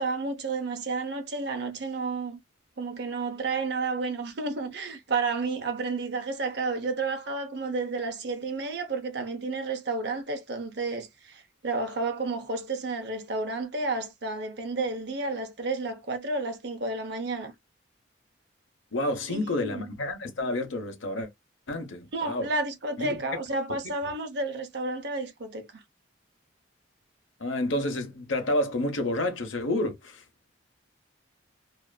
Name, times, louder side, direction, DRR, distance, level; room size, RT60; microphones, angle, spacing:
voice 1, 0.0-2.4 2.8-17.5 19.3-19.9 22.1-25.7, right 3 dB, 55° right, 0.7 m, -31 dB
voice 2, 18.9-21.3 21.7-22.5 23.0-23.1 27.4-30.2, left 1 dB, 75° left, 0.8 m, -29 dB
2.6 x 2.5 x 2.2 m
head